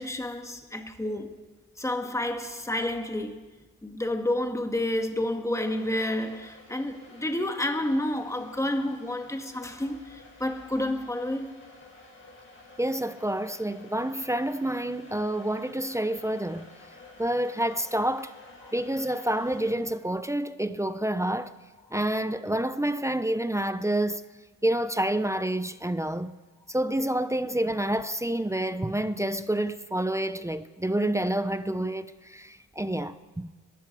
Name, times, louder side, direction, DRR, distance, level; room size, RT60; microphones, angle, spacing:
voice 1, 0.0-1.4 1.8-3.5 3.8-11.5 18.6-18.7, left 1 dB, 10° left, 1.8 m, -30 dB
sound 1, 5.6-19.7, left 2 dB, 40° left, 5.9 m, -51 dB
voice 2, 12.8-16.7 17.2-18.3 18.7-21.5 21.9-24.2 24.6-26.3 26.7-33.5, right 1 dB, 10° right, 0.7 m, -28 dB
21.5 x 12.5 x 4.9 m
cardioid pair, 75°, 32 cm